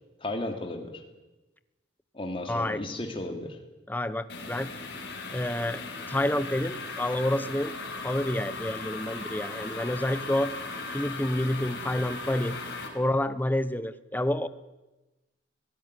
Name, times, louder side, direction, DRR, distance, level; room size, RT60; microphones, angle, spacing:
voice 1, 0.2-1.0 2.1-3.6, left 1 dB, 30° left, 3 dB, 2.9 m, -34 dB
voice 2, 2.5-2.8 3.9-4.7 5.3-5.8 6.1-7.7 8.0-10.5 10.9-12.6 12.9-14.5, left 1 dB, 10° left, 13 dB, 0.7 m, -28 dB
sound 1, 4.3-12.9, left 3 dB, 60° left, 4.9 m, -38 dB
22.5 x 17.0 x 9.8 m, 1.1 s
head